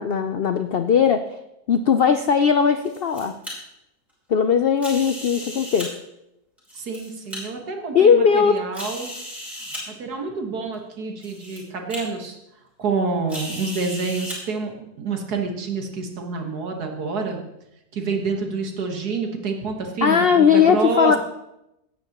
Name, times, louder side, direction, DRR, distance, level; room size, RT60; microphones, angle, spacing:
voice 1, 0.0-1.4 1.7-3.3 4.3-5.9 7.9-8.6 20.0-21.2, left 7 dB, 70° left, 8 dB, 0.5 m, -18 dB
sound 1, 2.6-3.5 4.8-5.9 6.6-7.4 8.0-8.1 8.7-9.8 10.7-10.8 11.2-11.6 11.9-12.0 13.3-14.4, equal, ahead, 4.5 m, -35 dB
voice 2, 6.8-9.1 9.9-12.4 12.8-17.4 17.9-21.2, right 4 dB, 80° right, 3 dB, 2.0 m, -28 dB
17.5 x 9.4 x 3.0 m, 0.87 s
omnidirectional pair, 1.6 m